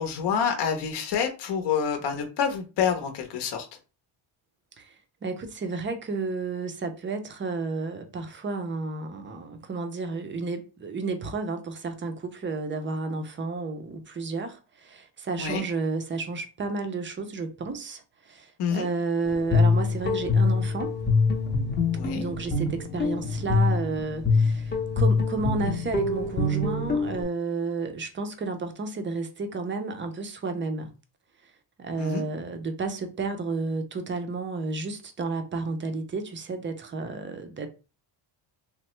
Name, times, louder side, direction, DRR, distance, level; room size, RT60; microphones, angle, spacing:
voice 1, 0.0-3.7 15.4-15.6 18.6-18.9 21.9-22.2 32.0-32.2, left 7 dB, 55° left, 0.7 m, -27 dB
voice 2, 5.2-20.9 22.1-30.9 31.8-37.7, right 3 dB, 25° right, 0.4 m, -32 dB
Guitar, 19.2-27.2, left 4 dB, 20° left, 0.7 m, -25 dB
3.2 x 2.0 x 3.0 m
cardioid pair, 110°, 50 cm